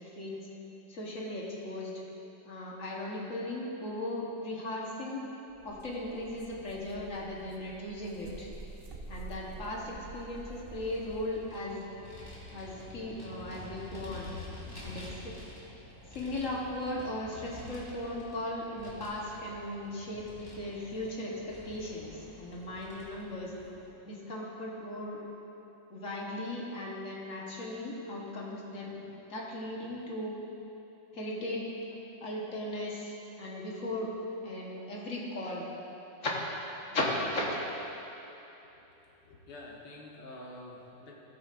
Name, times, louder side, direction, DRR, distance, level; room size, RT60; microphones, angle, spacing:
voice 1, 0.2-0.5 0.9-1.9 2.4-5.2 5.6-8.5 9.1-11.8 12.5-14.3 14.8-15.3 16.1-20.3 20.5-23.5 24.0-25.2 25.9-29.0 29.3-30.4 31.1-31.7 32.2-34.1 34.4-35.7 36.2-36.3 36.9-37.6, left 1 dB, 45° left, -3 dB, 1.5 m, -37 dB
sound 1, 5.5-11.5, right 2 dB, 65° right, 0.5 m, -48 dB
Vehicle, 10.7-23.9, left 2 dB, 15° left, 1.5 m, -48 dB
voice 2, 39.1-41.2, left 1 dB, 70° left, -2 dB, 1.9 m, -48 dB
15.0 x 8.5 x 2.5 m, 3.0 s
omnidirectional pair, 2.0 m